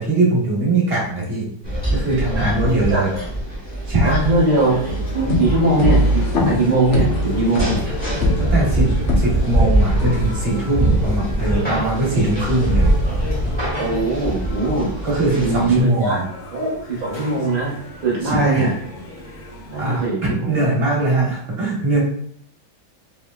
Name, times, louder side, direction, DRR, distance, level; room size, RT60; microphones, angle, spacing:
voice 1, 0.0-1.4 1.9-3.1 3.9-4.2 8.4-8.9 9.2-12.9 15.0-16.2 18.3-18.7 19.8-22.0, right 2 dB, 40° right, -4 dB, 1.0 m, -21 dB
sound 1, 1.6-15.8, right 1 dB, 5° left, 0.8 m, -23 dB
voice 2, 2.4-3.2 4.0-4.8 5.1-7.8 12.1-12.2 13.8-15.0 15.4-16.2 16.5-17.7 18.0-18.8 19.7-21.0, right 2 dB, 75° right, -5 dB, 0.4 m, -21 dB
sound 2, 4.1-20.1, equal, 60° left, 0.9 m, -36 dB
sound 3, 4.8-9.6 10.0-10.6, equal, 90° left, 0.6 m, -22 dB
3.0 x 2.9 x 2.3 m, 0.63 s
omnidirectional pair, 2.0 m